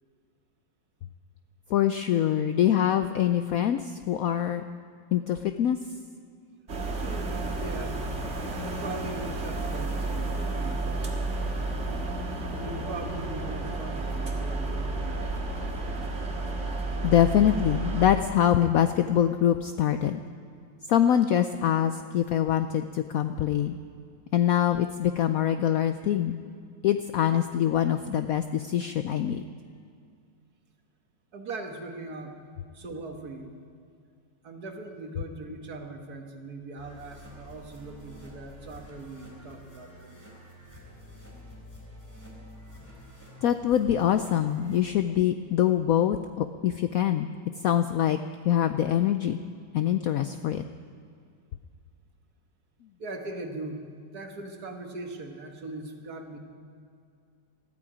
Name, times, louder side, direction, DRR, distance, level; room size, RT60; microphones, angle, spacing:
voice 1, 1.7-4.6 5.1-5.8 17.0-20.2 20.9-23.8 24.3-26.4 26.8-29.4 43.4-47.3 47.6-48.2 48.4-49.4 49.7-50.6, left 10 dB, 90° left, 9 dB, 0.7 m, -24 dB
sound 1, 6.7-18.2, right 2 dB, 40° right, 1.9 m, -31 dB
voice 2, 6.9-8.0 8.5-11.8 12.5-15.3 31.3-32.4 32.7-33.6 34.4-40.4 53.0-53.9 54.1-56.4, right 2 dB, 55° right, 4 dB, 1.8 m, -40 dB
sound 2, 36.8-44.8, left 1 dB, 5° left, 3.6 m, -48 dB
20.0 x 14.0 x 5.0 m, 2.3 s
omnidirectional pair, 2.1 m